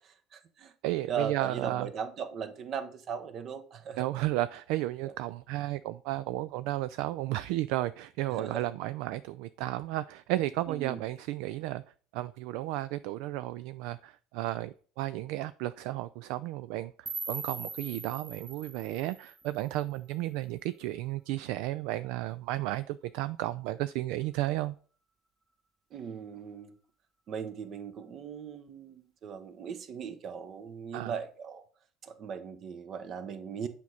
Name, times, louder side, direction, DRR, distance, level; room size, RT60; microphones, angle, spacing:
voice 1, 0.3-0.7 1.1-4.1 8.3-8.6 10.7-11.0 25.9-26.7 27.3-31.6 32.0-33.7, right 7 dB, 45° right, 1.0 m, -38 dB
voice 2, 0.8-1.9 4.0-11.8 12.1-24.7 30.9-31.2, right 16 dB, 60° right, 0.3 m, -33 dB
sound 1, 17.1-20.1, right 3 dB, 25° right, 1.4 m, -41 dB
9.3 x 5.2 x 4.1 m
figure-of-eight pair, 60°, 0 cm